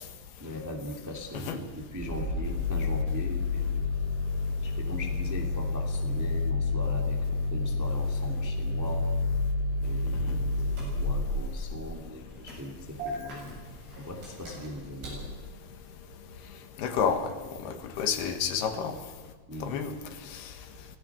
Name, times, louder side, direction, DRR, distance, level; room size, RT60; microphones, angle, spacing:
voice 1, 0.4-3.8 4.6-9.0 9.8-13.7 14.0-15.2 19.5-19.8, equal, 10° right, 2 dB, 1.1 m, -40 dB
Engine starting, 2.0-15.3, left 3 dB, 75° right, 9.9 m, -30 dB
voice 2, 16.8-17.3 17.6-19.0 19.6-19.9 20.3-20.4, left 7 dB, 75° left, 8 dB, 3.4 m, -29 dB
25.5 x 17.0 x 6.0 m, 1.4 s
omnidirectional pair, 4.7 m